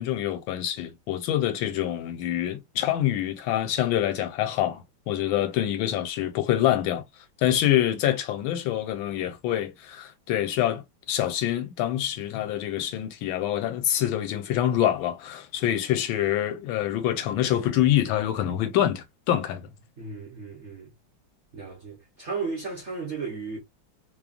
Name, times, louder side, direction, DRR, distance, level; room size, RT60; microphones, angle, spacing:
voice 1, 0.0-7.0 7.4-19.7, left 12 dB, 80° left, 1.4 m, -26 dB
voice 2, 20.0-20.9 21.5-23.6, right 4 dB, 55° right, 0.8 m, -35 dB
3.2 x 2.1 x 2.3 m
omnidirectional pair, 2.2 m